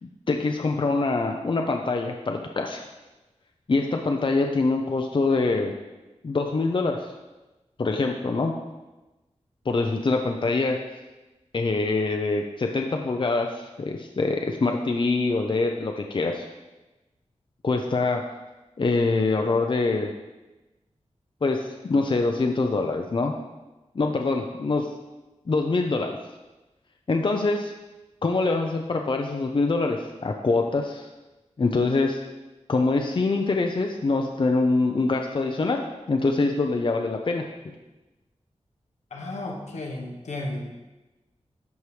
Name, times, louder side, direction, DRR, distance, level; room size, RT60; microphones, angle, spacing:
voice 1, 0.0-2.8 3.7-5.7 6.2-7.1 7.8-8.5 9.7-10.8 11.5-16.5 17.6-18.2 18.8-20.1 21.4-23.3 23.9-24.9 25.5-26.2 27.1-27.7 28.2-31.1 31.6-32.2 32.7-37.5, left 3 dB, 45° left, 3 dB, 0.6 m, -24 dB
voice 2, 39.1-40.7, left 2 dB, 85° left, 0 dB, 1.2 m, -33 dB
12.5 x 4.7 x 3.3 m, 1.1 s
wide cardioid pair, 80°, 12 cm